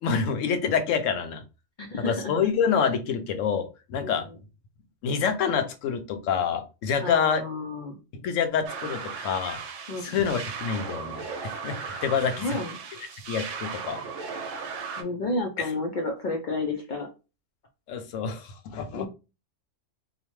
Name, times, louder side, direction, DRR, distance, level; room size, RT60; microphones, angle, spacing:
voice 1, 0.0-1.4 2.0-4.3 5.0-7.4 8.1-9.6 10.0-12.6 13.3-14.0 15.6-15.7 17.9-19.1, left 6 dB, 85° left, 7 dB, 0.9 m, -27 dB
voice 2, 1.8-2.3 7.0-8.0 9.9-10.3 12.4-12.7 15.0-17.1 18.9-19.1, left 2 dB, 65° left, 2 dB, 0.5 m, -31 dB
sound 1, 8.6-15.0, right 5 dB, 85° right, 0.9 m, -36 dB
2.8 x 2.1 x 3.0 m, 0.29 s
omnidirectional pair, 1.3 m